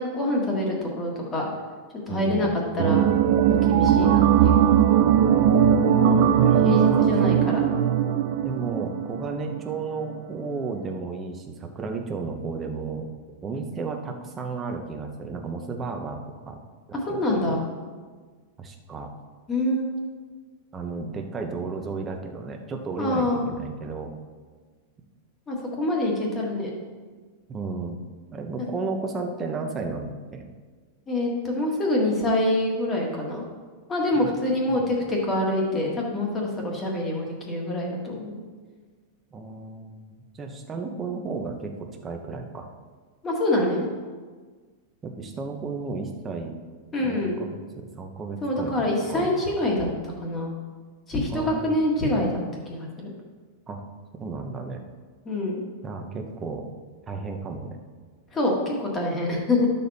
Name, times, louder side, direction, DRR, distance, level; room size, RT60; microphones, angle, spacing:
voice 1, 0.0-1.5 2.1-2.5 2.7-3.1 3.5-4.7 6.2-6.4 6.6-7.6 16.9-17.6 19.5-19.9 23.0-23.5 25.5-26.7 28.6-28.7 31.1-33.4 33.9-38.4 43.2-43.9 46.9-47.4 48.4-50.5 51.1-52.4 52.7-53.1 55.3-55.6 58.3-59.7, left 1 dB, 15° left, -1 dB, 1.6 m, -26 dB
voice 2, 2.1-2.6 5.6-5.7 6.0-7.1 8.4-13.1 13.4-16.6 16.9-17.6 18.6-19.1 20.7-24.1 27.5-28.0 28.3-30.5 34.1-34.3 34.7-34.8 39.3-42.7 45.0-46.5 47.0-48.7 49.1-49.3 51.3-51.8 53.7-53.8 54.1-54.8 55.8-56.7 57.1-57.8, right 4 dB, 15° right, 3 dB, 0.8 m, -33 dB
out of orbit, 2.8-9.8 10.1-10.2, right 9 dB, 40° right, 0.5 m, -19 dB
12.0 x 6.8 x 4.1 m, 1.5 s
supercardioid pair, 175°, 0 cm